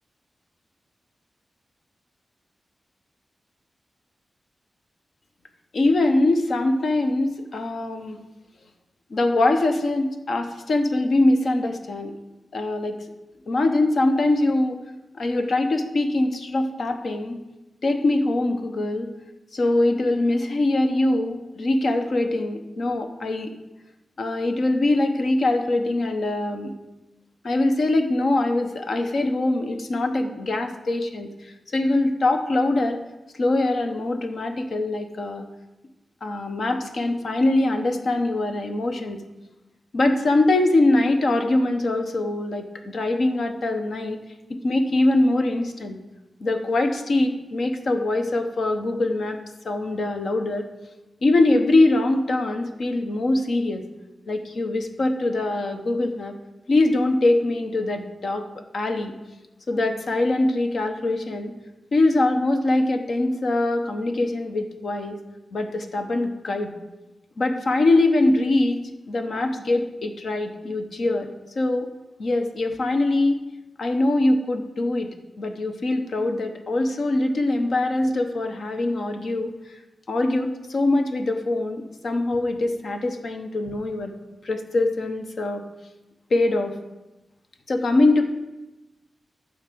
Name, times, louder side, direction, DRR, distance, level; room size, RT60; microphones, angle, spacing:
voice 1, 5.7-8.2 9.1-12.1 12.5-13.0 13.5-14.8 15.1-17.4 17.8-19.1 19.5-23.5 24.2-26.7 27.4-33.0 33.4-35.5 36.2-39.2 39.9-44.2 44.5-46.0 46.4-49.4 49.6-50.6 51.2-53.8 54.3-56.3 56.7-59.1 59.7-61.5 61.9-65.2 65.5-66.7 67.4-68.8 69.1-71.3 71.6-71.9 72.2-73.4 73.8-75.1 75.4-79.5 80.1-84.1 84.4-85.6 86.3-86.7 87.7-88.2, left 2 dB, 55° left, 5 dB, 0.9 m, -23 dB
11.0 x 4.6 x 6.8 m, 1.0 s
wide cardioid pair, 165°, 0 cm